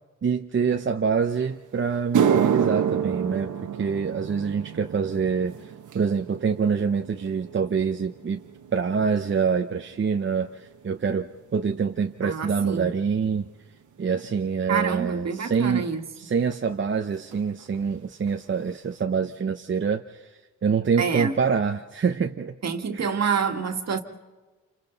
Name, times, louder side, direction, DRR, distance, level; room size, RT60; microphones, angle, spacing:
voice 1, 0.2-8.4 8.7-13.5 14.0-15.9 16.2-22.6 22.9-23.1, right 6 dB, 40° right, 0.8 m, -26 dB
sound 1, 1.4-1.5 1.9-10.5 10.7-11.2 11.9-12.0 14.8-14.9 16.5-16.6 16.8-17.0 17.3-17.8 18.3-18.4 18.9-19.0, right 8 dB, 75° right, 1.2 m, -29 dB
voice 2, 12.2-12.9 14.7-16.0 21.0-21.3 22.6-24.0, right 6 dB, 55° right, 1.9 m, -27 dB
28.5 x 27.0 x 4.1 m
cardioid pair, 85°, 31 cm